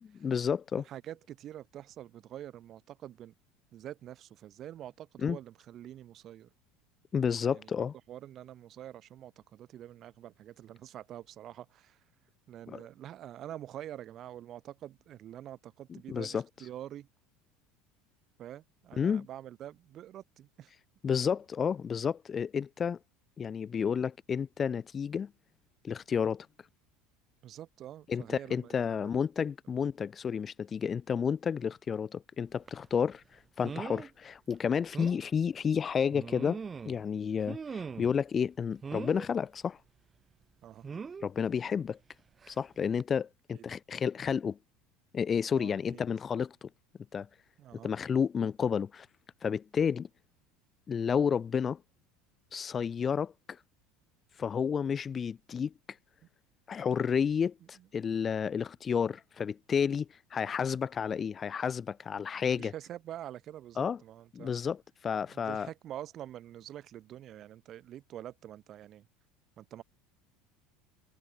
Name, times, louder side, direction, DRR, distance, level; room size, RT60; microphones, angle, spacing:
voice 1, 0.2-0.8 5.2-5.4 7.1-7.9 12.7-12.8 16.1-16.4 19.0-19.3 21.0-23.0 23.4-25.3 25.8-26.5 28.1-33.2 33.6-36.6 36.9-39.8 41.2-42.0 42.5-44.6 45.1-46.7 47.1-47.3 47.8-49.1 49.4-50.1 50.9-51.8 52.5-53.6 54.4-55.7 56.7-62.7 63.8-64.0 64.3-65.7, left 7 dB, 30° left, 0.4 m, -31 dB
voice 2, 0.8-3.3 3.7-6.5 7.5-12.0 12.5-17.1 18.4-20.7 27.4-29.1 40.6-40.8 43.5-43.6 45.5-46.0 47.6-47.9 57.8-57.9 62.2-64.5 65.3-69.1 69.6-69.8, right 12 dB, 45° right, 2.0 m, -46 dB
sound 1, 32.7-32.8 33.6-34.1 34.5-34.6 34.9-35.2 36.1-37.0 37.5-38.2 38.8-39.3 40.8-41.3 42.4-42.6 43.0-43.1, right 5 dB, 25° right, 2.4 m, -40 dB
supercardioid pair, 110°, 0 cm